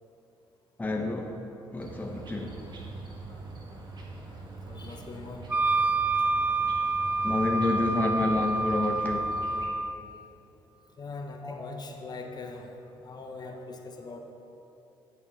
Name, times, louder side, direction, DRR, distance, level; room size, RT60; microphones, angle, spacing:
voice 1, 0.8-1.4 1.7-2.6 7.2-9.4 11.4-11.7, left 2 dB, 15° left, 1 dB, 0.9 m, -29 dB
sound 1, 1.8-9.7, right 3 dB, 45° right, 1.9 m, -43 dB
voice 2, 4.7-5.5 11.0-12.7 13.0-14.2, left 3 dB, 45° left, 3 dB, 1.2 m, -41 dB
Wind instrument woodwind instrument, 5.5-10.0, right 3 dB, 15° right, 0.4 m, -27 dB
11.0 x 5.8 x 5.7 m, 3.0 s
supercardioid pair, 70°, 10 cm